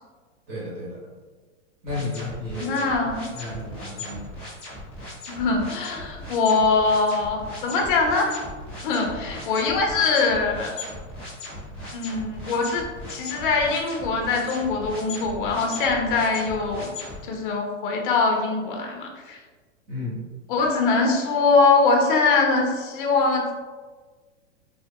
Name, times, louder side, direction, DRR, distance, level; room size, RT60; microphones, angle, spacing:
voice 1, 0.5-1.0 1.8-2.9 3.3-4.3 19.9-20.2, left 2 dB, 35° right, -6 dB, 1.3 m, -32 dB
sound 1, 1.9-17.2, left 2 dB, 5° left, 0.4 m, -38 dB
voice 2, 2.6-3.2 5.3-8.4 8.8-10.8 11.9-16.9 17.2-19.4 20.5-23.5, left 4 dB, 45° left, 1 dB, 0.6 m, -22 dB
3.5 x 2.5 x 2.2 m, 1.4 s
hypercardioid pair, 150°, 37 cm